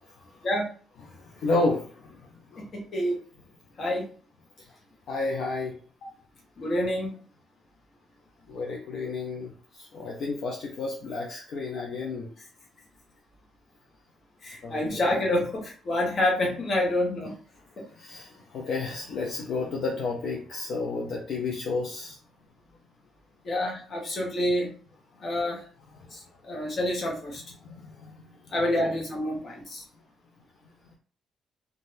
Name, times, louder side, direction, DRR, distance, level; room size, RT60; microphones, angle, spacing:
voice 1, 1.0-2.6 4.6-4.7 5.1-5.8 8.5-12.3 14.6-15.2 18.0-22.2 25.9-26.2 26.5-26.6 27.6-28.2 28.5-28.9, left 3 dB, 65° left, -2 dB, 0.6 m, -32 dB
voice 2, 2.6-3.2 3.8-4.1 6.6-7.2 14.4-17.3 17.8-17.9 23.4-24.7 25.2-25.6 26.4-27.4 28.5-29.8, left 1 dB, 50° left, 0 dB, 1.1 m, -27 dB
2.6 x 2.3 x 3.2 m, 0.42 s
cardioid pair, 90°, 0 cm